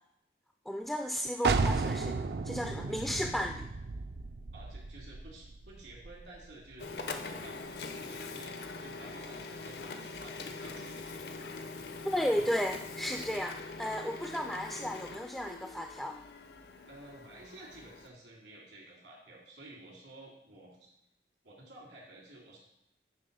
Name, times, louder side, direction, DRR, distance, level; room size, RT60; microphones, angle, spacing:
voice 1, 0.7-2.2 2.4-3.6 12.0-16.2, equal, ahead, 3 dB, 0.3 m, -34 dB
sound 1, 1.4-7.0, right 4 dB, 65° right, 0.4 m, -34 dB
voice 2, 2.9-3.3 4.5-11.6 16.9-20.9 21.4-22.6, right 1 dB, 90° right, -2 dB, 3.0 m, -52 dB
Printer, 6.8-18.1, left 3 dB, 70° left, 0.7 m, -43 dB
9.5 x 3.7 x 5.4 m, 0.83 s
head